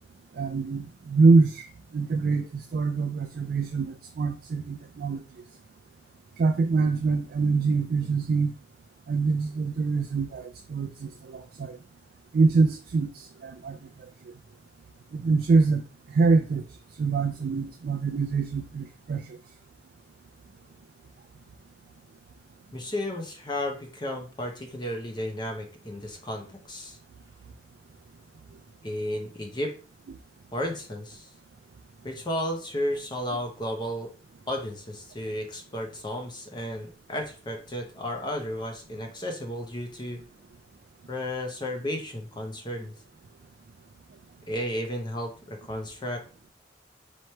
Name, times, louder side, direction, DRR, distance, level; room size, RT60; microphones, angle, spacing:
voice 1, 0.4-1.7 1.9-5.2 6.4-8.5 9.1-11.8 12.3-13.8 15.1-15.8 16.1-16.6 17.0-19.4, right 4 dB, 55° right, 0.3 m, -24 dB
voice 2, 22.7-27.0 28.8-29.7 30.5-31.3 32.0-34.1 34.5-40.2 41.1-42.9 44.5-46.2, left 1 dB, 25° left, 0.8 m, -33 dB
3.2 x 3.0 x 4.4 m
head